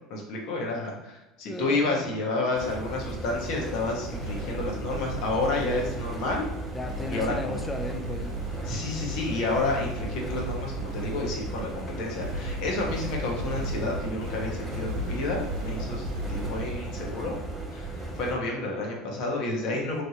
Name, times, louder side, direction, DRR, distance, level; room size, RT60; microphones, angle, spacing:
voice 1, 0.1-6.5 7.1-7.6 8.6-17.4 17.7-20.0, left 2 dB, 60° left, -1 dB, 1.0 m, -30 dB
voice 2, 1.4-2.2 6.7-8.4 15.7-16.1 19.7-19.9, left 1 dB, 15° left, 4 dB, 0.5 m, -36 dB
sound 1, 2.6-18.4, right 2 dB, 5° right, 1.1 m, -36 dB
sound 2, 3.8-17.4, right 1 dB, 75° right, 0.8 m, -37 dB
3.2 x 2.7 x 2.8 m, 0.97 s
hypercardioid pair, 75°, 0 cm